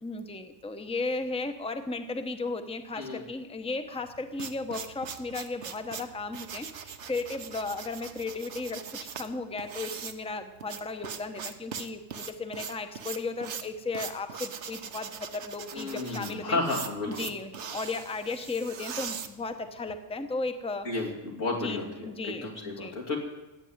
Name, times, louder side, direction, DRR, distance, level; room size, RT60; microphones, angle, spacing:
voice 1, 0.0-16.8 17.1-21.1 21.5-22.9, left 3 dB, 5° left, 8 dB, 0.8 m, -35 dB
sound 1, 4.0-19.9, right 7 dB, 65° right, 1.2 m, -41 dB
voice 2, 15.7-17.2 20.8-23.2, left 2 dB, 85° left, -2 dB, 3.4 m, -32 dB
15.5 x 8.9 x 9.6 m, 1.0 s
omnidirectional pair, 1.3 m